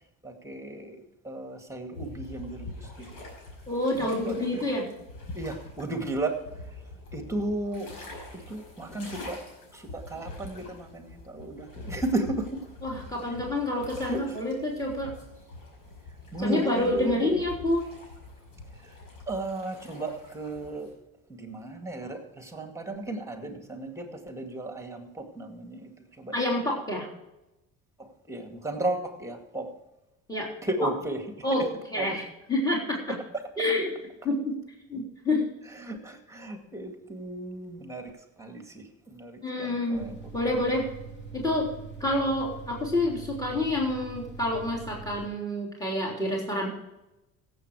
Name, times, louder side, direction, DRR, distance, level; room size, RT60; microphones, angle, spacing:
voice 1, 0.2-3.1 4.0-4.7 5.3-6.4 7.1-7.9 8.3-9.4 9.7-12.6 14.0-14.2 16.3-17.4 19.3-20.9 21.3-25.9 26.2-26.4 28.0-29.7 30.6-31.2 32.0-32.2 35.7-38.1 38.4-40.2, right 2 dB, 10° right, 4 dB, 2.1 m, -34 dB
sound 1, 1.9-20.9, left 2 dB, 70° left, 5.3 m, -45 dB
voice 2, 3.7-4.9 12.8-15.1 16.4-17.8 26.3-27.1 30.3-30.5 31.4-31.6 31.9-33.0 33.6-33.9 34.2-34.5 34.9-35.5 39.4-40.1 40.3-40.8 41.3-41.7 42.0-46.7, left 1 dB, 10° left, -2 dB, 3.4 m, -28 dB
sound 2, 39.9-45.3, right 5 dB, 30° left, 2.7 m, -43 dB
16.0 x 7.8 x 4.8 m, 0.96 s
cardioid pair, 90°, 34 cm